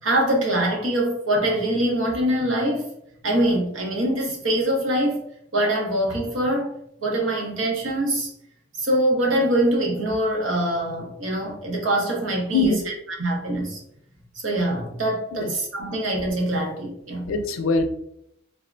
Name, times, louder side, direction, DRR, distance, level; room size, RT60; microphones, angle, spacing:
voice 1, 0.0-2.9 3.2-5.2 5.5-6.7 7.0-8.3 8.8-12.7 13.2-13.8 14.4-17.3, right 1 dB, 85° right, -1 dB, 0.8 m, -23 dB
voice 2, 12.5-12.9 15.3-15.5 17.3-17.8, left 3 dB, 85° left, 7 dB, 0.4 m, -22 dB
3.5 x 2.0 x 2.4 m, 0.76 s
head